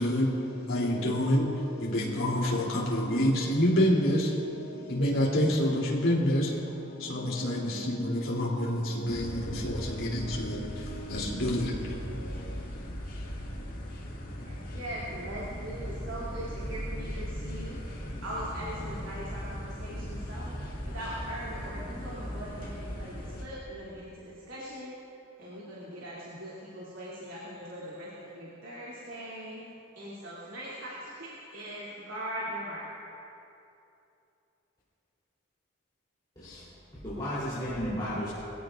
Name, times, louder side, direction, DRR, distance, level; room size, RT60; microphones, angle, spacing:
voice 1, 0.0-12.6, equal, 75° left, -5 dB, 3.3 m, -28 dB
sound 1, 9.1-23.4, equal, 45° left, 2.2 m, -38 dB
voice 2, 14.4-20.6 20.8-24.9 25.4-32.9, equal, 70° right, -8 dB, 3.0 m, -40 dB
voice 3, 36.4-36.7 36.9-38.3, equal, 20° left, -12 dB, 3.8 m, -33 dB
23.0 x 16.5 x 2.6 m, 2.8 s
head